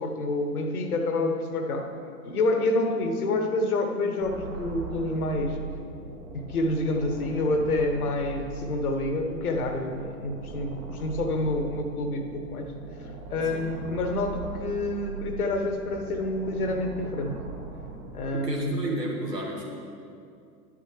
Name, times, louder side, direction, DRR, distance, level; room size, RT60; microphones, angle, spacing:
voice 1, 0.0-1.9 2.2-5.6 6.3-12.7 13.0-17.4 18.1-18.8, left 2 dB, 65° left, 5 dB, 1.2 m, -28 dB
sound 1, 4.2-18.2, right 3 dB, 55° right, 1.5 m, -40 dB
voice 2, 18.3-19.6, right 1 dB, 90° right, -2 dB, 1.8 m, -31 dB
11.0 x 9.6 x 3.2 m, 2.4 s
figure-of-eight pair, 95°, 47 cm